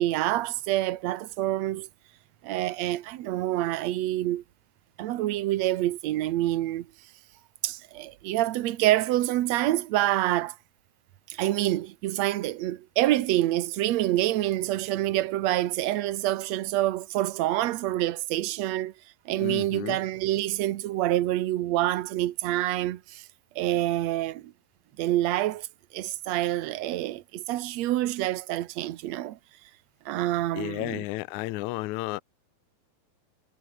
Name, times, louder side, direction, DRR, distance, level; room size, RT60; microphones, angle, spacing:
voice 1, 0.0-1.9 2.4-4.4 5.0-6.9 7.6-10.5 11.3-18.9 19.3-23.2 23.5-24.5 25.0-25.7 25.9-29.4 30.0-31.0, right 15 dB, 70° right, 1.6 m, -27 dB
voice 2, 19.4-20.0 30.5-32.2, left 19 dB, 85° left, 1.6 m, -32 dB
omnidirectional pair, 4.3 m